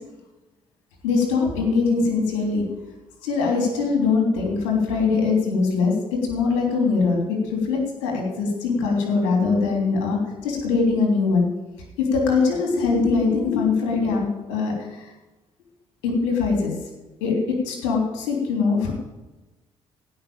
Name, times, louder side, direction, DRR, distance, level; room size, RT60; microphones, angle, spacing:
voice 1, 1.0-2.7 3.2-5.9 6.3-11.4 12.1-15.1 16.0-16.7 17.2-17.4 17.6-18.9, left 4 dB, 70° left, 0 dB, 3.3 m, -22 dB
16.0 x 5.9 x 8.7 m, 1.1 s
figure-of-eight pair, 45°, 15 cm